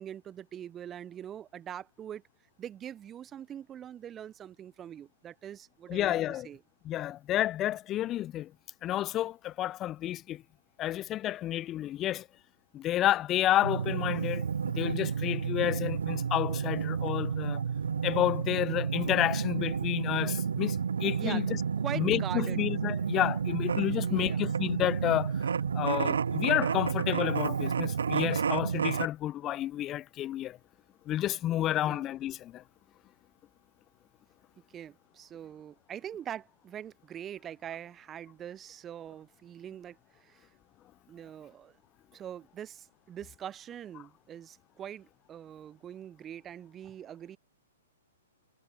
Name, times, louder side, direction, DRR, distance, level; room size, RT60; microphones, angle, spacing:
voice 1, 0.0-2.2 2.6-6.6 21.2-22.6 24.0-24.5 31.6-32.1 34.7-40.5 41.1-41.7 42.1-47.4, right 10 dB, 20° right, 0.5 m, -43 dB
voice 2, 5.9-6.5 6.8-8.5 8.8-10.4 10.8-12.3 12.7-17.6 18.0-21.6 21.9-25.4 25.7-30.6 31.1-32.6, left 13 dB, 25° left, 0.4 m, -30 dB
sound 1, 13.6-29.1, right 6 dB, 75° right, 0.4 m, -31 dB
hypercardioid pair, 120°, 0 cm